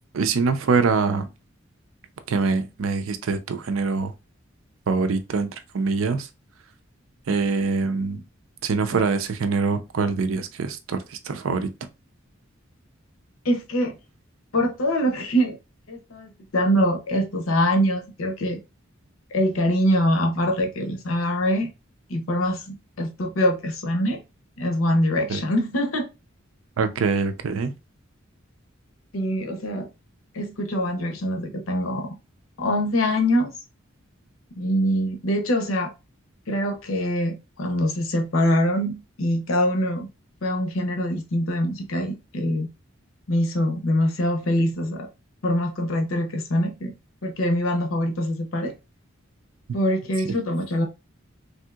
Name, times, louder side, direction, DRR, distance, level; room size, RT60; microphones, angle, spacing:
voice 1, 0.1-1.3 2.3-4.1 4.9-5.5 5.7-6.3 7.3-8.2 8.6-11.7 25.3-25.4 26.8-27.7 50.3-50.4, right 4 dB, 80° right, 0.5 m, -24 dB
voice 2, 13.4-14.0 14.5-15.6 15.9-18.6 19.3-21.7 22.1-24.2 24.6-26.1 29.1-29.9 30.3-32.1 32.6-33.5 34.6-35.9 36.5-40.1 40.4-42.7 43.3-45.1 45.4-46.9 47.2-48.7 49.7-50.9, equal, 85° left, 0.7 m, -24 dB
3.4 x 2.7 x 2.3 m
head